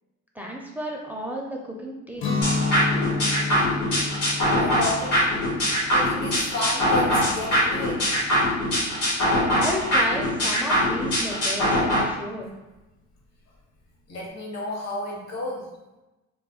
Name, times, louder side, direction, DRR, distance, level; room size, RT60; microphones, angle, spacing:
voice 1, 0.3-2.5 9.5-12.5, equal, 5° right, -1 dB, 0.4 m, -33 dB
Guitar, 2.2-8.0, left 3 dB, 40° left, 0.6 m, -30 dB
sound 1, 2.4-12.0, equal, 85° left, 1.2 m, -23 dB
voice 2, 4.3-5.3 5.6-8.2 12.0-12.1 14.1-15.7, left 2 dB, 60° left, -1 dB, 0.9 m, -32 dB
2.4 x 2.1 x 3.7 m, 1.0 s
cardioid pair, 90°, 30 cm